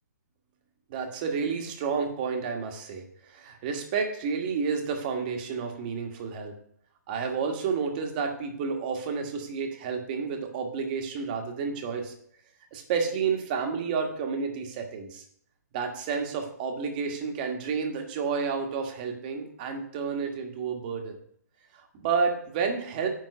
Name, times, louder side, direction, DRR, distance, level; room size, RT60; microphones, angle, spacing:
voice 1, 0.9-6.5 7.1-12.1 12.7-15.2 15.7-21.2 21.7-23.1, right 5 dB, 30° right, 3 dB, 1.3 m, -30 dB
9.9 x 3.7 x 6.7 m, 0.64 s
hypercardioid pair, 160°, 9 cm